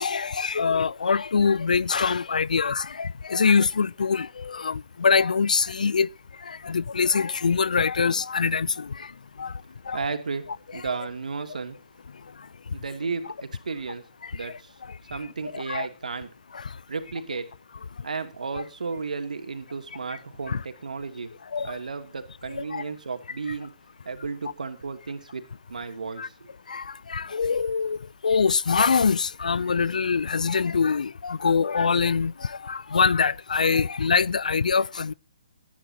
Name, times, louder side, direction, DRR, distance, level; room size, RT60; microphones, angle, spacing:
voice 1, 0.0-6.1 6.4-9.1 9.4-9.5 9.9-10.1 14.2-14.3 15.5-15.9 16.5-16.7 20.5-20.6 21.5-21.8 22.5-22.8 26.2-26.3 26.7-28.0 28.2-35.1, left 5 dB, 85° left, 0.5 m, -24 dB
voice 2, 9.9-10.5 10.7-11.8 12.7-14.0 14.3-14.7 15.1-16.3 16.9-17.5 18.0-21.3 21.6-23.7 24.0-25.4 25.7-26.5, right 4 dB, 85° right, 2.8 m, -33 dB
20.0 x 10.5 x 2.9 m
hypercardioid pair, 160°, 4 cm